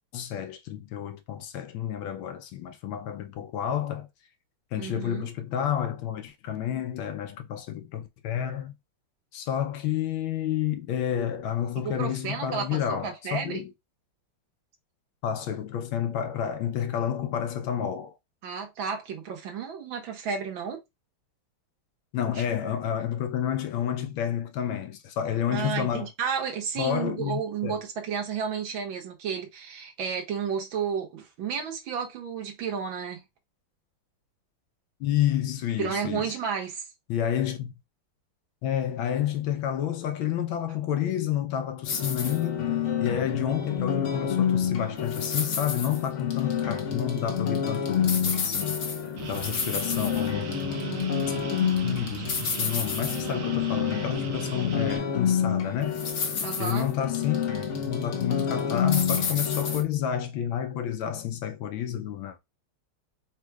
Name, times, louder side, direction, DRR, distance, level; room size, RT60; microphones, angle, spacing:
voice 1, 0.1-4.1 4.7-8.7 9.3-13.7 15.2-18.2 22.1-26.1 26.8-27.8 35.0-36.3 37.1-37.7 38.6-42.7 43.0-48.8 49.3-51.0 51.8-56.0 56.6-57.5 57.8-62.4, left 10 dB, 75° left, 1.4 m, -30 dB
voice 2, 4.8-5.3 11.8-13.6 18.4-20.8 22.4-22.5 25.5-33.2 35.8-36.8 56.4-56.9, right 6 dB, 65° right, 1.8 m, -32 dB
sound 1, 41.9-59.8, left 7 dB, 55° left, 0.8 m, -28 dB
sound 2, 49.2-55.0, right 7 dB, 90° right, 0.7 m, -38 dB
4.3 x 2.3 x 4.5 m
omnidirectional pair, 2.4 m